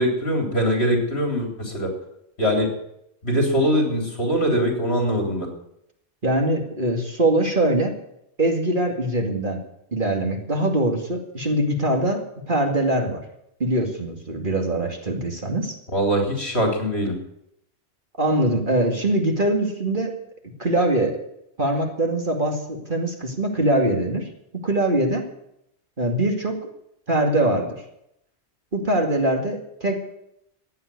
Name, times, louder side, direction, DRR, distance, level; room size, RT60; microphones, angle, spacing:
voice 1, 0.0-1.9 2.4-2.7 3.2-5.5 15.9-17.2, equal, 60° left, 2 dB, 4.2 m, -22 dB
voice 2, 6.2-8.0 8.4-9.6 9.9-13.2 13.6-15.8 18.2-20.2 20.6-21.2 21.6-24.3 24.6-25.2 26.0-26.7 27.1-27.7 28.7-30.0, right 1 dB, 45° right, 3 dB, 2.5 m, -22 dB
14.5 x 9.6 x 9.7 m, 0.79 s
omnidirectional pair, 1.2 m